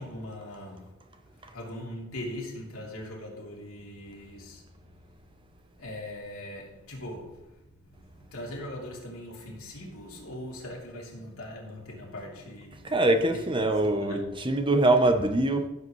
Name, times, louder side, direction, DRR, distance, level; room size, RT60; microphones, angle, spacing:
voice 1, 0.0-5.0 5.6-13.0 13.3-14.4 15.0-15.2, left 1 dB, 85° left, 3.3 m, -41 dB
voice 2, 12.9-15.7, right 2 dB, 25° right, 0.8 m, -23 dB
15.0 x 7.8 x 3.2 m
head